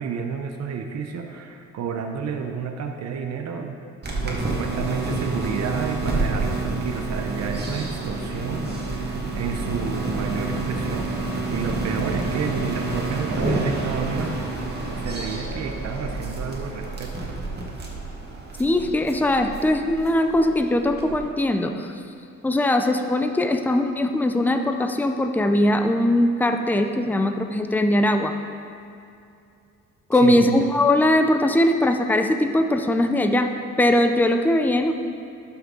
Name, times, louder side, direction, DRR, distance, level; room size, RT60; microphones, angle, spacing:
voice 1, 0.0-3.8 4.2-14.4 15.0-17.4 30.1-30.6, right 6 dB, 60° right, 4 dB, 0.8 m, -31 dB
sound 1, 4.0-21.2, right 3 dB, 35° right, 1.7 m, -28 dB
voice 2, 18.6-21.9 22.4-28.4 30.1-33.5 33.8-34.9, left 1 dB, 5° left, 6 dB, 0.5 m, -20 dB
12.0 x 5.9 x 3.8 m, 2.6 s
cardioid pair, 90°, 30 cm